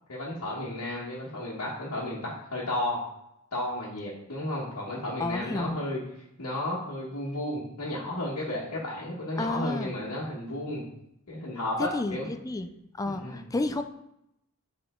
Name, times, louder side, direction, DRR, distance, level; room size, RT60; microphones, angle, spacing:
voice 1, 0.1-3.0 3.5-6.0 6.4-10.8 11.3-12.3 13.0-13.4, left 1 dB, 80° left, -8 dB, 1.4 m, -33 dB
voice 2, 5.2-5.8 9.4-9.9 11.8-12.7 12.9-13.8, left 2 dB, 15° left, 8 dB, 0.4 m, -31 dB
6.8 x 3.6 x 3.7 m, 0.80 s
head